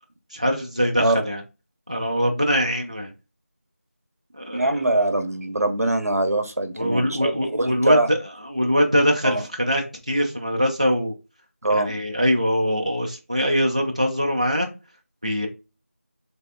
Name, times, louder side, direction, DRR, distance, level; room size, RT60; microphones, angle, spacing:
voice 1, 0.3-1.4 1.9-3.1 4.4-4.7 6.8-8.2 8.4-11.1 11.7-14.7 15.2-15.5, equal, 30° right, 0.4 m, -22 dB
voice 2, 4.5-8.1 9.2-9.4 11.6-11.9, right 2 dB, 85° right, 0.7 m, -23 dB
3.3 x 3.0 x 2.3 m
figure-of-eight pair, 180°, 8 cm